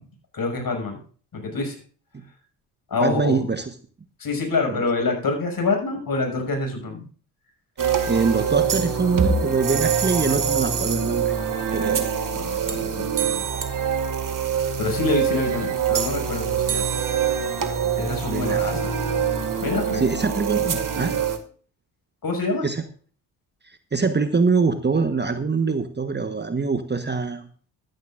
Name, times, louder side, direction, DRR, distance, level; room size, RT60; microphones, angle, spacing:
voice 1, 0.3-0.9 1.3-1.8 2.9-3.4 4.2-7.1 12.3-13.4 14.8-16.9 18.0-18.9 19.6-20.0 22.2-22.7, left 3 dB, 45° left, 3 dB, 5.9 m, -26 dB
voice 2, 3.0-3.7 4.7-4.8 8.1-11.3 11.7-12.1 18.3-18.8 19.9-21.1 22.6-22.8 23.6-27.5, right 4 dB, 20° right, 9 dB, 1.2 m, -24 dB
sound 1, 7.8-21.4, right 7 dB, 40° right, 2.1 m, -24 dB
13.5 x 13.5 x 2.5 m, 0.42 s
hypercardioid pair, 50°, 50 cm